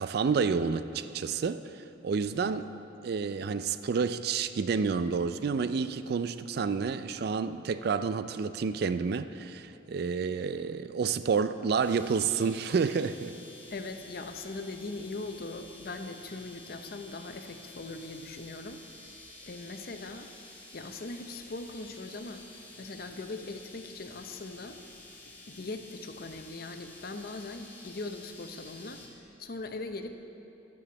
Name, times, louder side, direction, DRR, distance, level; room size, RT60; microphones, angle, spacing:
voice 1, 0.0-2.7 3.0-13.3, right 5 dB, 55° right, 12 dB, 0.3 m, -29 dB
sound 1, 11.8-29.1, left 2 dB, 10° left, 1.7 m, -51 dB
voice 2, 13.7-20.3 20.7-22.5 22.8-24.8 25.5-29.0 29.4-30.1, left 3 dB, 50° left, 7 dB, 0.7 m, -40 dB
10.0 x 7.9 x 6.9 m, 2.8 s
head